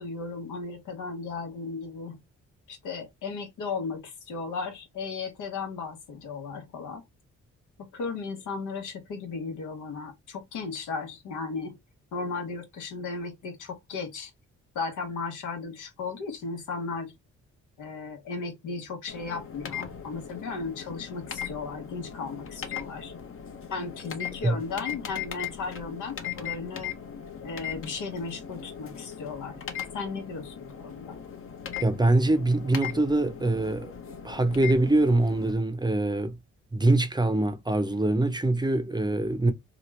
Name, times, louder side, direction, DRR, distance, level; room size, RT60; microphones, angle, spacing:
voice 1, 0.0-2.2 2.7-7.0 7.9-11.8 12.1-14.3 14.7-17.1 17.8-23.1 23.7-26.9 27.4-29.6 29.9-31.2, left 4 dB, 85° left, 1.0 m, -35 dB
sound 1, 19.1-35.5, left 8 dB, 45° left, 0.8 m, -39 dB
voice 2, 31.8-33.9 34.2-36.4 36.7-39.5, right 2 dB, 15° right, 0.6 m, -24 dB
2.9 x 2.4 x 3.1 m
cardioid pair, 75°, 29 cm